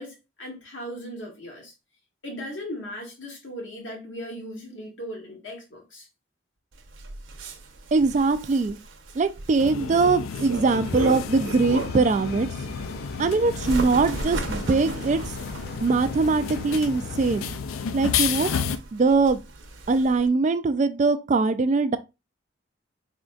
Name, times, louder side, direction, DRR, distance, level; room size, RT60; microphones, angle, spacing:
voice 1, 0.0-1.7 2.2-6.1, equal, 65° left, 1.9 m, -38 dB
Bird, 6.7-12.2 12.6-20.3, right 3 dB, 70° right, 0.8 m, -36 dB
voice 2, 7.9-8.8 9.2-12.5 13.2-15.2 15.8-17.5 17.9-18.5 18.9-19.4 19.9-22.0, right 3 dB, 35° right, 0.3 m, -22 dB
sound 1, 9.6-18.8, left 7 dB, 90° left, 0.4 m, -32 dB
Engine, 10.8-17.6, left 1 dB, 50° left, 0.7 m, -40 dB
4.3 x 3.8 x 2.4 m
head